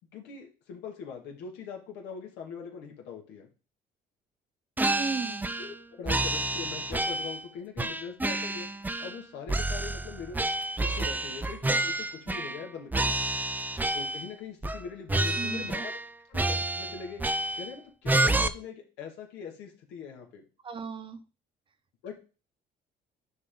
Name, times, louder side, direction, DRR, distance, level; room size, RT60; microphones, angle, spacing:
voice 1, 0.1-3.5 5.6-8.7 9.0-10.4 10.8-13.2 13.9-15.9 16.3-17.2 17.5-20.4 22.0-22.1, left 6 dB, 90° left, 1 dB, 2.2 m, -42 dB
sound 1, 4.8-5.8 6.1-7.4 7.8-9.2 9.5-12.6 12.9-14.3 14.6-14.8 15.1-16.1 16.3-17.7 18.1-18.5, right 2 dB, 10° right, 0.5 m, -29 dB
voice 2, 4.9-5.5 15.4-15.9 20.6-21.2, right 5 dB, 30° right, 10 dB, 1.0 m, -36 dB
9.5 x 5.3 x 3.9 m, 0.35 s
cardioid pair, 110°, 17 cm